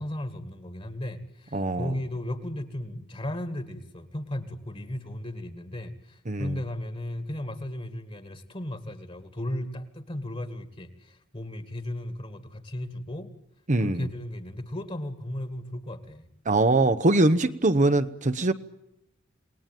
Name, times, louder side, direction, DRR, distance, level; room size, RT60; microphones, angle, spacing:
voice 1, 0.0-13.3 13.8-16.3, left 1 dB, 30° left, 11 dB, 2.0 m, -35 dB
voice 2, 1.5-1.9 6.3-6.6 13.7-14.1 16.4-18.5, right 2 dB, 40° right, 10 dB, 1.0 m, -22 dB
28.5 x 19.5 x 9.1 m, 0.86 s
head